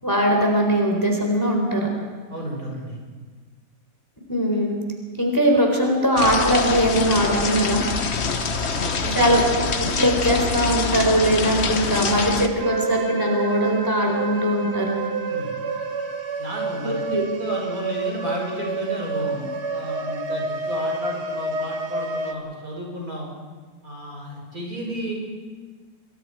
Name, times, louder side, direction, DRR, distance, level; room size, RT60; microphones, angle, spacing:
voice 1, 0.0-1.9 4.3-4.8 5.2-7.8 9.2-9.4 10.0-15.0 16.8-17.2, equal, 10° left, 1 dB, 3.8 m, -20 dB
voice 2, 2.3-3.0 8.8-9.4 15.3-15.5 16.4-23.3 23.8-25.1, right 1 dB, 65° right, -2 dB, 6.8 m, -32 dB
sound 1, 6.2-12.5, left 4 dB, 45° left, 1.3 m, -25 dB
sound 2, 12.6-22.3, right 3 dB, 90° right, 2.1 m, -29 dB
28.5 x 21.5 x 4.8 m, 1.4 s
omnidirectional pair, 1.7 m